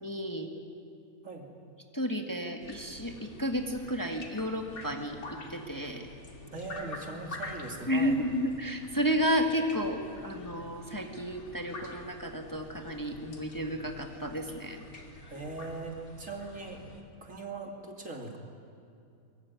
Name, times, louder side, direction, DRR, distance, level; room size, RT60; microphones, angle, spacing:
voice 1, 0.0-0.5 1.9-6.1 7.9-14.8, equal, 15° left, 3 dB, 1.7 m, -32 dB
sound 1, 2.6-17.0, left 2 dB, 85° left, 3.2 m, -47 dB
voice 2, 6.5-8.2 15.3-16.8 17.2-18.4, right 3 dB, 60° right, 2 dB, 3.2 m, -40 dB
23.0 x 22.0 x 9.6 m, 2.5 s
omnidirectional pair, 1.5 m